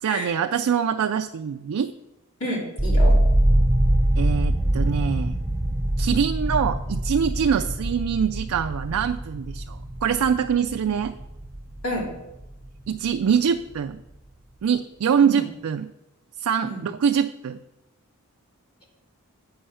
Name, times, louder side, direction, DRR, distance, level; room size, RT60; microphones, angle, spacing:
voice 1, 0.0-1.9 4.2-5.4 6.0-11.1 12.9-14.0 14.6-15.9 16.4-17.6, right 7 dB, 75° right, 7 dB, 0.4 m, -24 dB
voice 2, 2.4-3.2 7.5-7.6 11.8-12.1 15.2-15.5 16.6-16.8, equal, 85° left, -4 dB, 3.2 m, -29 dB
sound 1, 2.8-12.8 13.1-13.8, right 1 dB, 5° right, 0.7 m, -24 dB
8.7 x 5.5 x 5.6 m, 0.95 s
head